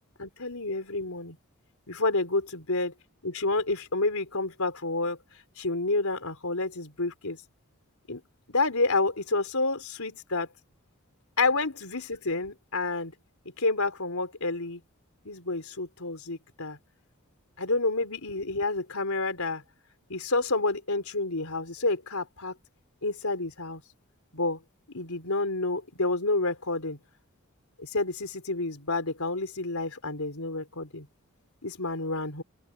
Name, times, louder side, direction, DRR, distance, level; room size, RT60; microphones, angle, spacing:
voice 1, 0.2-1.4 1.9-2.9 3.2-5.2 5.6-7.4 8.1-8.2 8.5-10.5 11.4-13.1 13.6-14.8 15.2-16.8 17.6-19.6 20.1-22.5 23.0-23.8 24.3-24.6 24.9-27.0 27.8-31.1 31.6-32.4, left 3 dB, 80° left, 3.9 m, -29 dB
open air
head